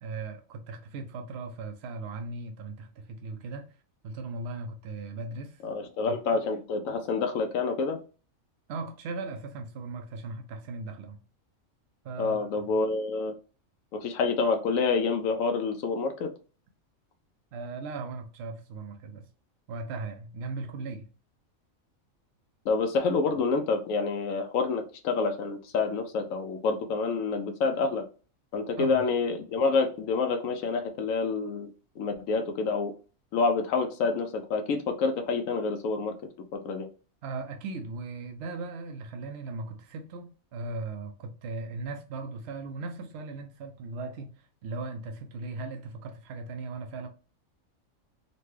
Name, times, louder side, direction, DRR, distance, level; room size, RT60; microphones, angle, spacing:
voice 1, 0.0-3.7 4.0-5.6 8.7-11.2 12.0-12.5 17.5-19.3 19.7-21.1 28.8-29.0 37.2-47.1, right 3 dB, 60° right, 0.7 m, -38 dB
voice 2, 5.6-8.0 12.2-13.3 13.9-16.3 22.6-28.0 28.5-31.7 32.0-32.9 33.3-36.1 36.5-36.9, left 4 dB, 85° left, 1.0 m, -28 dB
4.0 x 2.2 x 3.1 m
omnidirectional pair, 1.4 m